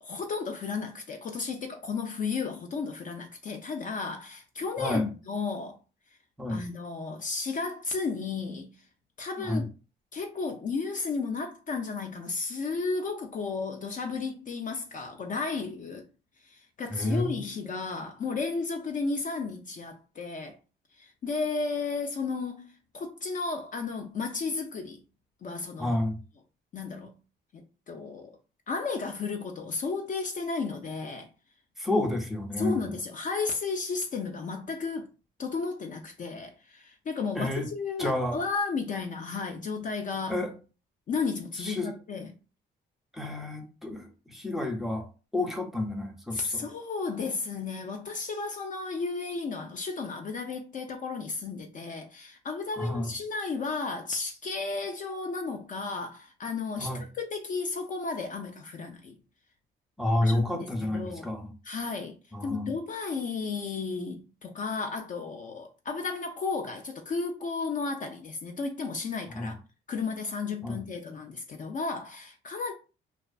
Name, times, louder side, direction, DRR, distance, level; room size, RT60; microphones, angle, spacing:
voice 1, 0.0-5.8 6.1-6.2 6.5-8.9 9.2-9.7 10.1-16.1 16.4-20.6 20.9-25.0 25.4-26.0 26.7-27.2 27.5-28.4 28.7-31.3 32.6-35.1 35.4-40.5 41.1-42.3 46.3-59.2 60.2-61.3 61.6-62.2 62.4-69.5 69.9-72.7, left 4 dB, 40° left, 0.4 m, -33 dB
voice 2, 16.9-17.4 25.8-26.2 31.8-32.9 37.3-37.7 38.0-38.4 40.3-40.5 41.6-41.9 43.1-45.1 45.3-46.6 52.8-53.1 56.8-57.0 60.0-61.5 62.3-62.7 69.3-69.5 70.6-70.8, left 1 dB, ahead, 0.6 m, -30 dB
2.3 x 2.3 x 2.4 m
cardioid pair, 90°, 20 cm